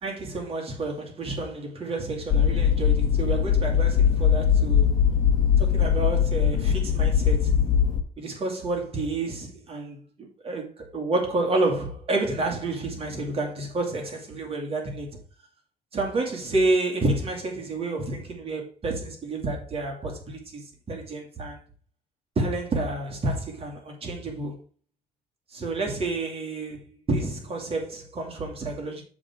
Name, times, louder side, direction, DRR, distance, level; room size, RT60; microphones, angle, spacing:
voice 1, 0.0-4.9 5.6-7.5 8.2-15.1 15.9-21.6 22.4-24.5 25.5-26.8 27.1-29.0, right 2 dB, 35° right, 2.5 m, -29 dB
sound 1, 2.3-8.0, left 8 dB, 50° left, 1.1 m, -21 dB
7.0 x 3.7 x 5.9 m
cardioid pair, 110°, 17 cm